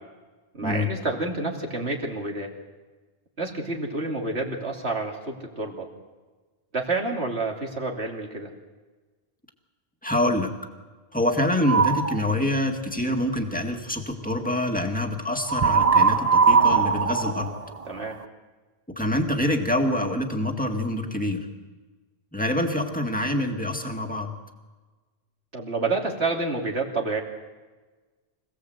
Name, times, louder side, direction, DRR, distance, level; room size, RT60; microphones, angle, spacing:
voice 1, 0.5-2.5 3.4-5.9 6.7-8.5 17.8-18.2 25.5-27.2, right 3 dB, 80° right, 1 dB, 3.0 m, -29 dB
voice 2, 10.0-10.5 11.1-17.5 19.0-21.5 22.3-24.3, left 1 dB, 10° left, 3 dB, 2.0 m, -26 dB
sound 1, 11.6-12.2 15.5-18.2, right 5 dB, 40° right, 0.9 m, -20 dB
25.5 x 17.0 x 8.0 m, 1.3 s
omnidirectional pair, 1.1 m